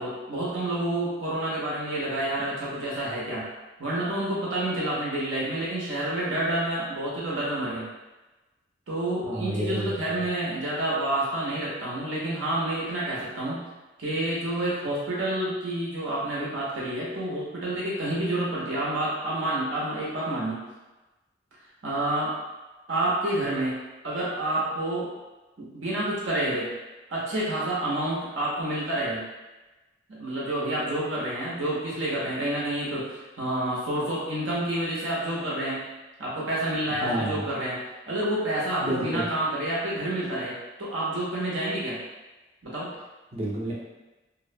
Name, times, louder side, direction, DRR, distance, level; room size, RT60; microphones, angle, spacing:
voice 1, 0.0-3.5 3.8-7.9 8.9-13.7 14.0-20.6 21.8-22.3 22.9-25.1 25.6-26.7 27.1-29.2 30.1-35.8 36.2-37.8 38.1-42.0 42.6-42.9, right 1 dB, 75° right, -6 dB, 0.6 m, -29 dB
voice 2, 9.2-10.2 37.0-37.5 38.8-39.3 43.3-43.7, right 1 dB, 30° right, -5 dB, 0.5 m, -30 dB
2.5 x 2.0 x 2.5 m, 1.1 s
head